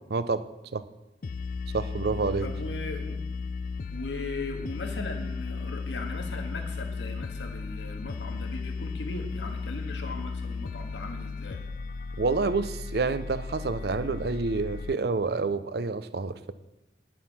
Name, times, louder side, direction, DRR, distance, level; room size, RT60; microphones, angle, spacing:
voice 1, 0.1-0.4 0.7-0.8 1.7-2.5 12.2-16.5, right 4 dB, 60° right, 14 dB, 0.5 m, -28 dB
sound 1, 1.2-14.9, left 4 dB, 45° left, 0.4 m, -35 dB
voice 2, 2.4-3.2 3.9-11.6, left 2 dB, 80° left, 4 dB, 1.7 m, -38 dB
10.5 x 8.2 x 5.9 m, 0.94 s
head